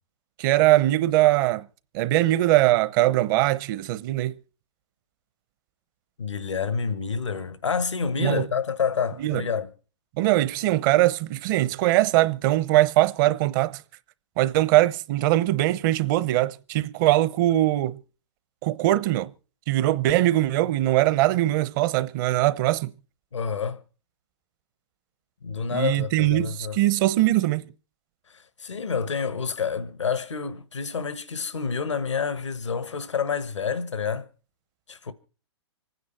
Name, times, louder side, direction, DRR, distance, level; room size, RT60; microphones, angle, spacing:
voice 1, 0.4-1.6 1.9-4.3 8.2-8.4 9.2-9.4 10.2-13.8 14.4-18.0 18.6-19.3 19.7-22.9 25.7-27.7, right 15 dB, 45° right, 0.9 m, -21 dB
voice 2, 6.2-9.7 23.3-23.8 25.4-26.8 28.3-34.3 34.9-35.1, left 6 dB, 85° left, 1.3 m, -28 dB
25.5 x 9.6 x 4.4 m
hypercardioid pair, 120°, 15 cm